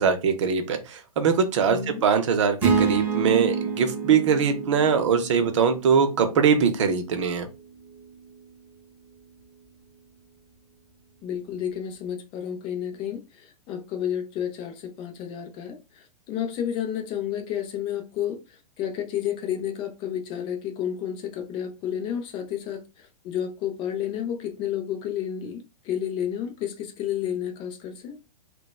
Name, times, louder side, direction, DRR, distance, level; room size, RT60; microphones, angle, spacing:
voice 1, 0.0-7.5, right 6 dB, 50° right, 0.6 m, -22 dB
voice 2, 1.7-2.0 11.2-18.4 18.8-28.2, left 9 dB, 25° left, 0.5 m, -31 dB
sound 1, 2.6-6.9, right 6 dB, 10° right, 0.9 m, -28 dB
2.9 x 2.1 x 2.2 m
figure-of-eight pair, 105°, 20 cm